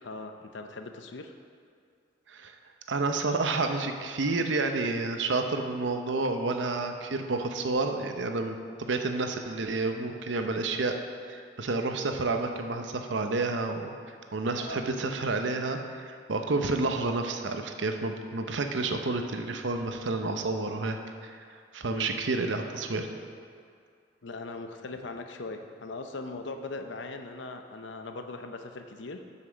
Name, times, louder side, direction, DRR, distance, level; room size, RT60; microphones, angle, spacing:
voice 1, 0.0-1.3 14.6-14.8 21.9-22.1 24.2-29.2, left 3 dB, 85° left, 6 dB, 0.7 m, -40 dB
voice 2, 2.9-10.9 11.3-14.0 14.3-23.1, right 3 dB, 85° right, 5 dB, 0.7 m, -30 dB
8.0 x 5.8 x 6.3 m, 2.3 s
head